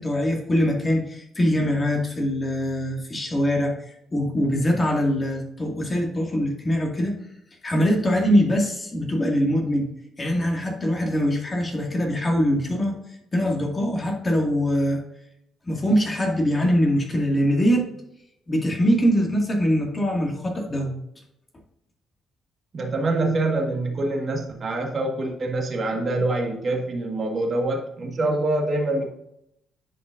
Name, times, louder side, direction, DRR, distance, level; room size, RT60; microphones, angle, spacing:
voice 1, 0.0-3.8 4.1-7.2 7.6-9.9 10.2-12.9 13.3-15.0 15.7-17.9 18.5-20.9, equal, 25° left, 0 dB, 2.1 m, -23 dB
voice 2, 22.7-29.1, right 2 dB, 45° right, 2 dB, 1.7 m, -25 dB
10.0 x 5.3 x 2.6 m, 0.79 s
cardioid pair, 90°, 0 cm